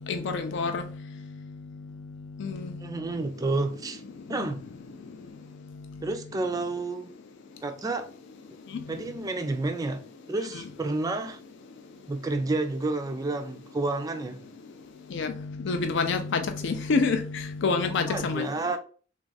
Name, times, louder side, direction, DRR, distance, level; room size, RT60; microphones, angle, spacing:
voice 1, 0.1-0.8 2.4-2.5 15.1-15.3 15.7-18.5, left 4 dB, 60° left, 0.4 m, -27 dB
voice 2, 2.8-4.0 4.3-4.6 6.0-7.1 7.6-8.1 8.9-10.0 10.3-11.4 12.1-14.4 18.1-18.8, right 2 dB, 15° right, 0.3 m, -30 dB
3.4 x 2.4 x 3.9 m
head